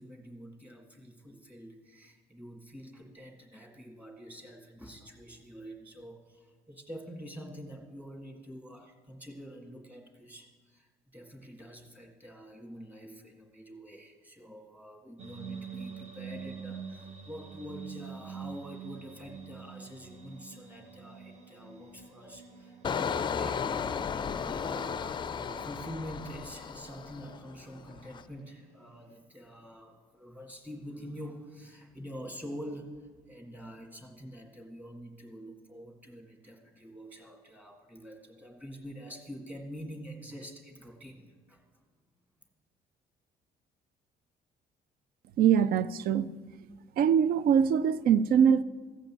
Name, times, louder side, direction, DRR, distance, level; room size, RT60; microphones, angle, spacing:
voice 1, 0.0-23.6 23.9-41.6, equal, 10° right, 1.8 m, -46 dB
sound 1, 15.2-29.2, right 6 dB, 40° right, 1.4 m, -47 dB
Engine, 22.8-27.5 27.9-28.2, left 6 dB, 30° left, 0.4 m, -34 dB
voice 2, 45.4-46.3 47.0-48.6, right 8 dB, 65° right, 0.4 m, -23 dB
15.0 x 5.2 x 7.5 m
cardioid pair, 110°, 17 cm